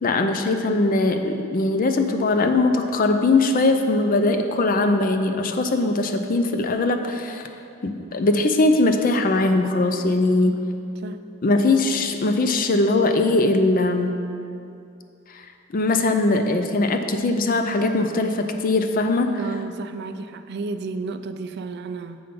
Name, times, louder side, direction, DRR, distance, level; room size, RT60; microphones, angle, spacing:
voice 1, 0.0-7.4 7.8-10.6 11.4-14.2 15.3-15.5 15.7-19.4, left 2 dB, 45° left, 6 dB, 0.5 m, -21 dB
voice 2, 19.4-22.2, right 3 dB, 55° right, 10 dB, 0.4 m, -32 dB
6.9 x 5.4 x 5.1 m, 2.5 s
head